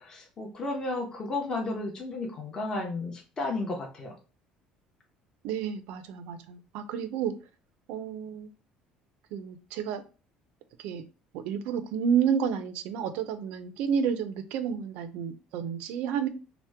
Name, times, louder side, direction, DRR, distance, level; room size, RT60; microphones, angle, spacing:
voice 1, 0.0-4.1, left 2 dB, 30° left, 1 dB, 0.7 m, -33 dB
voice 2, 5.4-7.3 7.9-8.5 9.3-10.0 10.8-11.0 11.3-16.3, right 7 dB, 75° right, 10 dB, 0.4 m, -30 dB
2.8 x 2.1 x 3.3 m, 0.33 s
cardioid pair, 140°, 2 cm